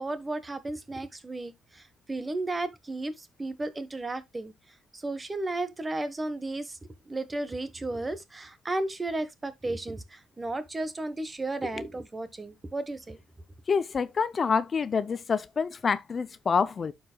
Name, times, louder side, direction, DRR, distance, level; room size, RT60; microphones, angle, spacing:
voice 1, 0.0-4.5 4.9-6.8 7.1-13.2, right 2 dB, 20° right, 1.2 m, -34 dB
voice 2, 13.7-16.9, left 5 dB, 40° left, 0.5 m, -27 dB
12.0 x 4.8 x 2.2 m
cardioid pair, 90°, 0 cm